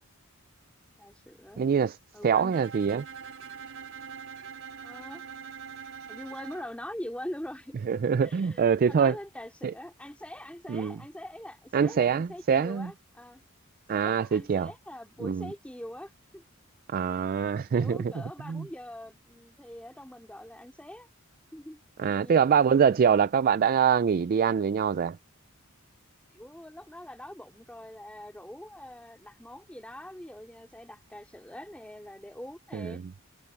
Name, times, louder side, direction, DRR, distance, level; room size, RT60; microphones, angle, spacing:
voice 1, 1.0-1.7 2.1-2.6 4.8-5.3 6.1-7.8 8.2-13.4 13.9-16.4 17.7-21.1 21.5-22.6 26.3-33.0, left 1 dB, 5° left, 2.7 m, -43 dB
voice 2, 1.6-2.0 2.2-3.0 7.9-9.1 9.6-9.7 10.7-11.0 11.7-12.9 13.9-14.7 15.2-15.5 16.9-18.1 18.5-18.7 22.0-25.2 32.7-32.9, right 7 dB, 40° right, 0.3 m, -24 dB
Bowed string instrument, 2.5-6.7, right 7 dB, 70° right, 4.0 m, -43 dB
head